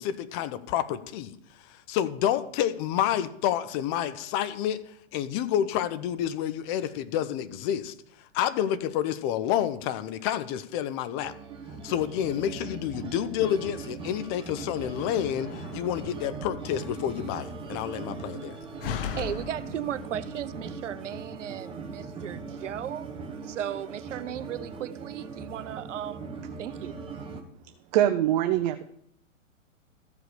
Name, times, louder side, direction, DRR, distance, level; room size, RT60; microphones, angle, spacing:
voice 1, 0.0-1.4 1.9-4.8 5.1-7.9 8.3-11.3 11.8-18.5, left 10 dB, 20° left, 12 dB, 0.4 m, -29 dB
sound 1, 11.2-27.4, right 4 dB, 15° right, 1.4 m, -40 dB
Slam, 14.8-20.4, left 8 dB, 45° left, 0.9 m, -40 dB
voice 2, 19.1-23.1 23.4-26.3 26.6-27.0, right 10 dB, 70° right, 14 dB, 0.8 m, -36 dB
voice 3, 27.9-28.8, right 12 dB, 35° right, 9 dB, 0.6 m, -23 dB
14.0 x 5.0 x 6.6 m, 0.74 s
hypercardioid pair, 125°, 38 cm